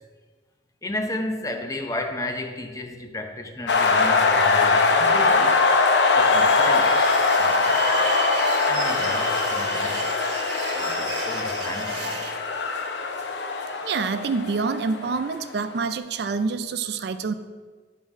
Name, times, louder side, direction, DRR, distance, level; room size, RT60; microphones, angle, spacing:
voice 1, 0.8-5.6 6.1-7.0 7.4-8.0 8.7-10.1 10.7-12.3, left 1 dB, 20° left, 0.6 m, -33 dB
sound 1, 3.7-15.4, left 3 dB, 80° left, 0.7 m, -22 dB
sound 2, 6.2-12.3, right 5 dB, 80° right, 1.1 m, -35 dB
voice 2, 13.8-17.3, right 4 dB, 65° right, 0.4 m, -27 dB
10.5 x 3.7 x 5.2 m
head